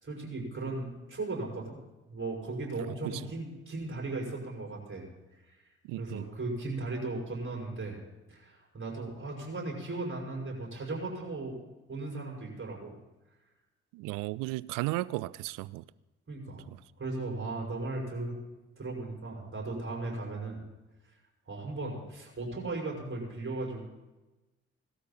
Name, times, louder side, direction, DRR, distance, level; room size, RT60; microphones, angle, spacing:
voice 1, 0.0-1.8 2.1-5.1 5.5-5.6 6.0-8.0 8.3-11.6 11.9-12.9 16.3-16.7 17.0-18.4 18.8-20.6 21.5-23.8, right 2 dB, 40° right, 5.8 m, -37 dB
voice 2, 2.7-3.3 5.8-6.3 13.9-15.8 16.7-16.8, right 19 dB, 70° right, 0.5 m, -35 dB
18.5 x 13.0 x 4.3 m
hypercardioid pair, 40°, 33 cm